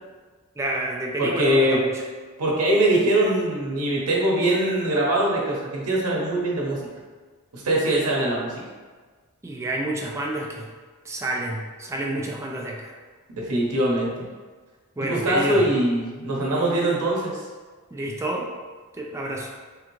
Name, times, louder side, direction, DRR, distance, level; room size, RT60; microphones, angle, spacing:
voice 1, 0.6-1.9 9.4-10.7 11.1-12.9 15.0-15.6 17.9-18.5 19.0-19.5, right 1 dB, 15° right, -1 dB, 0.3 m, -29 dB
voice 2, 1.2-1.8 2.4-6.9 7.5-8.5 13.3-14.3 15.0-17.4, right 1 dB, 90° right, -3 dB, 0.7 m, -22 dB
3.3 x 2.6 x 3.0 m, 1.4 s
head